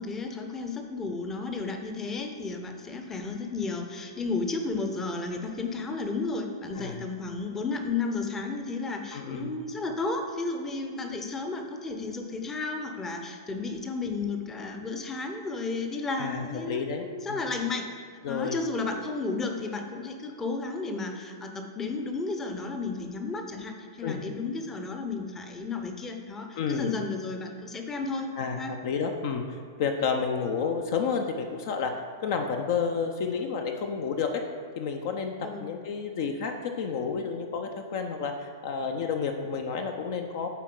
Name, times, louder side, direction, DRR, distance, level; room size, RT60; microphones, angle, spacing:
voice 1, 0.0-17.9 18.3-28.3 28.6-28.7 35.4-35.7, left 3 dB, 15° left, 4 dB, 0.7 m, -33 dB
voice 2, 9.1-9.5 16.2-17.4 18.2-18.6 24.0-24.2 26.6-26.9 28.4-31.9 32.2-34.3 34.8-35.3 35.6-40.5, left 6 dB, 50° left, 5 dB, 0.5 m, -30 dB
8.2 x 4.4 x 3.8 m, 2.1 s
figure-of-eight pair, 105°, 2 cm